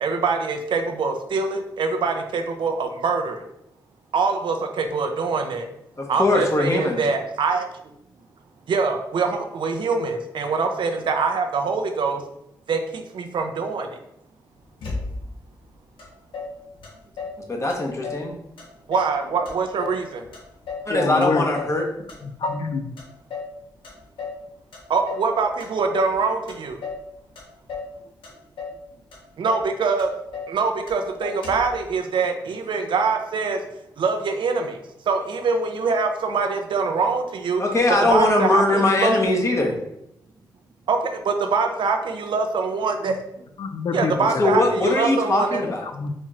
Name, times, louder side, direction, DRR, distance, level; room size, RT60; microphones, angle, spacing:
voice 1, 0.0-3.4 4.1-5.7 6.1-7.7 8.7-12.2 12.7-13.9 18.9-20.2 24.9-26.8 29.4-30.1 30.5-33.6 34.0-34.8 35.1-37.6 38.1-39.2 40.9-43.2 43.9-45.6, right 4 dB, 75° right, 5 dB, 0.5 m, -24 dB
voice 2, 6.0-7.0 17.5-18.3 20.9-21.8 37.6-39.7 44.4-45.8, left 2 dB, 35° left, 0 dB, 1.0 m, -21 dB
Motor vehicle (road), 14.8-15.5 16.0-16.1 16.3-17.4 17.7-18.3 18.6-19.2 19.5-20.9 21.2-21.8 22.1-22.7 23.0-23.6 23.8-24.4 24.7-25.3 25.6-26.2 26.5-27.1 27.4-27.9 28.2-28.8 29.1-29.2 29.4-29.7 30.0-30.6 30.9-31.0 31.2-31.8, left 4 dB, 85° left, 1.0 m, -34 dB
voice 3, 20.9-21.4 22.2-22.9 43.6-44.4 45.9-46.1, left 4 dB, 65° left, 6 dB, 0.5 m, -26 dB
4.3 x 3.0 x 2.4 m, 0.80 s
cardioid pair, 55°, 8 cm